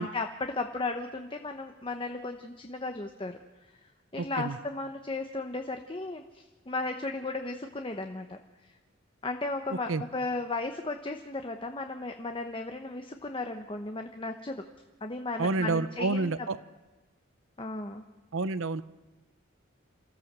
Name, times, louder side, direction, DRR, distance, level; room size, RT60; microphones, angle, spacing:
voice 1, 0.0-3.4 4.1-8.4 9.2-14.6 15.0-16.3 17.6-18.0, left 3 dB, 25° left, 5 dB, 0.9 m, -35 dB
voice 2, 4.2-4.6 9.9-10.0 15.4-16.6 18.3-18.8, right 3 dB, 80° right, 16 dB, 0.7 m, -29 dB
28.0 x 14.0 x 7.5 m, 1.2 s
head